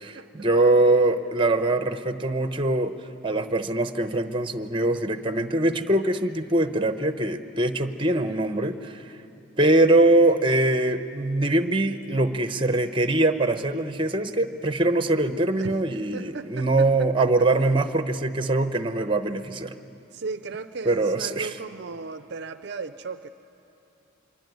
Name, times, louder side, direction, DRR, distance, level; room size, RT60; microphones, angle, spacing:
voice 1, 0.0-2.9 3.2-9.2 9.6-19.7 20.8-21.5, right 2 dB, 25° right, 9 dB, 0.9 m, -23 dB
voice 2, 16.1-17.3 20.1-23.3, right 4 dB, 55° right, 11 dB, 0.5 m, -36 dB
24.5 x 23.5 x 9.3 m, 2.9 s
head